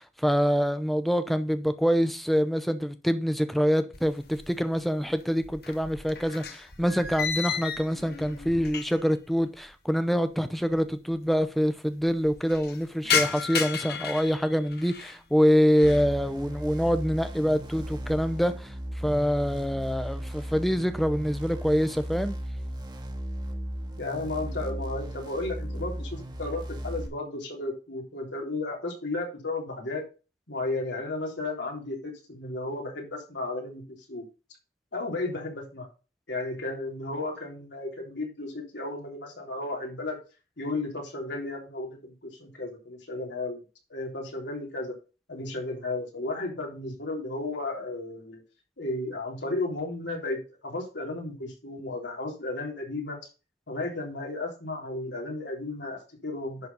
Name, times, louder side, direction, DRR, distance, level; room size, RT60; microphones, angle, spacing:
voice 1, 0.0-22.3, equal, ahead, 0.7 m, -25 dB
sound 1, 3.9-4.8 5.1-9.2 9.5-9.6 10.4-10.5 10.7-10.8 11.1-11.6 12.0-15.2 15.6-16.1 16.6-17.0 17.4-18.3, left 6 dB, 60° left, 1.4 m, -33 dB
sound 2, 15.8-27.1, equal, 25° right, 1.3 m, -36 dB
voice 2, 24.0-30.0 30.5-33.8 34.1-34.2 34.9-35.9 36.3-40.2 40.6-43.6 43.9-44.9 45.3-48.4 48.8-53.2 53.7-56.7, left 2 dB, 85° left, 3.3 m, -34 dB
10.5 x 4.2 x 5.3 m
head